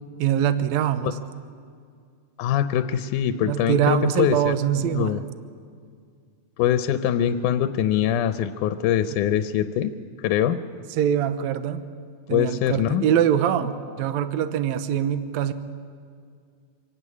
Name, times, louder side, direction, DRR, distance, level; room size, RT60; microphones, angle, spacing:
voice 1, 0.2-1.2 3.4-5.1 10.9-11.8 12.3-15.5, right 10 dB, 70° right, 12 dB, 1.9 m, -23 dB
voice 2, 2.4-5.2 6.6-9.9 10.2-10.6 12.3-13.0, left 10 dB, 75° left, 11 dB, 2.1 m, -23 dB
25.5 x 17.5 x 9.8 m, 2.2 s
omnidirectional pair, 3.9 m